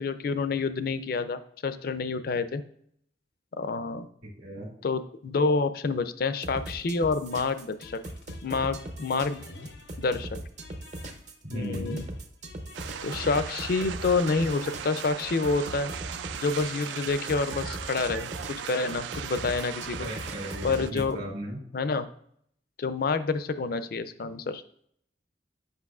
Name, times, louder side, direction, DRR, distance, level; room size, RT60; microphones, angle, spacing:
voice 1, 0.0-2.6 3.6-4.1 4.8-8.0 8.4-9.4 10.0-10.3 11.5-12.0 13.0-15.9 16.3-18.3 18.7-20.1 20.6-21.2 21.7-22.1 22.8-24.6, left 4 dB, 55° left, 12 dB, 0.4 m, -28 dB
voice 2, 4.2-4.7 11.4-12.0 20.0-21.6, equal, 60° right, -1 dB, 1.9 m, -36 dB
sound 1, 6.4-21.1, right 1 dB, 40° right, 0.6 m, -39 dB
sound 2, 7.3-21.1, left 3 dB, 80° left, 0.7 m, -49 dB
sound 3, 12.7-20.9, right 9 dB, 85° right, 0.3 m, -38 dB
8.1 x 5.3 x 2.4 m, 0.67 s
head